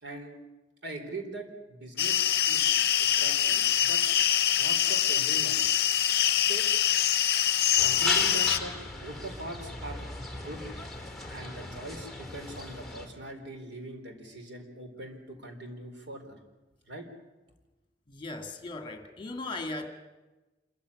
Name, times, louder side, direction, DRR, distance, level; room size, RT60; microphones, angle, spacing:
voice 1, 0.0-0.3 0.8-2.7 3.0-4.0 4.6-5.6 6.4-6.6 7.8-8.7 9.0-10.0 10.3-10.6 11.3-16.4 16.9-17.1, right 2 dB, 70° right, 4 dB, 4.2 m, -41 dB
sound 1, 2.0-8.6, left 10 dB, 60° left, 0.7 m, -24 dB
sound 2, 7.8-13.1, left 2 dB, ahead, 3.0 m, -36 dB
voice 2, 18.1-19.9, left 2 dB, 30° left, 5 dB, 2.1 m, -37 dB
27.0 x 14.5 x 9.8 m, 1.1 s
head